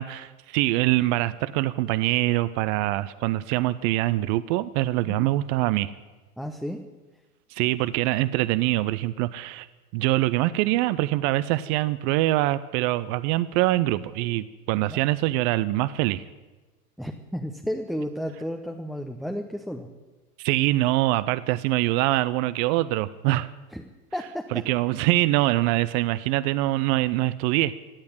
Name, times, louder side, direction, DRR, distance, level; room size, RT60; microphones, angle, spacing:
voice 1, 0.0-5.9 7.5-9.7 9.9-16.2 20.4-23.5 24.5-27.8, right 17 dB, 35° right, 16 dB, 0.5 m, -24 dB
voice 2, 6.4-6.8 14.7-15.1 17.0-19.9 23.7-23.8 24.1-24.6, equal, ahead, 4 dB, 0.7 m, -33 dB
16.0 x 8.5 x 9.7 m, 1.2 s
hypercardioid pair, 105°, 48 cm